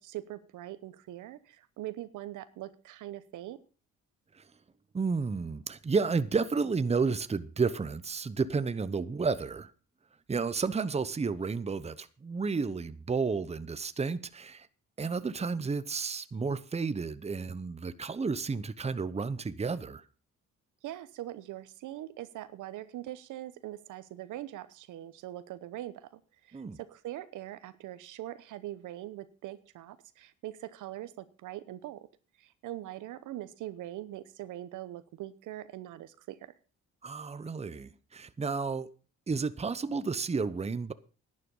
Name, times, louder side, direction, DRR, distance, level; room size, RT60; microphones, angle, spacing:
voice 1, 0.0-3.6 20.8-32.1 32.4-36.5, right 14 dB, 85° right, 0.9 m, -42 dB
voice 2, 4.9-9.7 10.3-14.7 15.0-20.0 26.5-26.8 37.0-38.9 39.3-40.9, right 4 dB, 20° right, 0.9 m, -31 dB
11.0 x 9.9 x 5.5 m
cardioid pair, 90°, 30 cm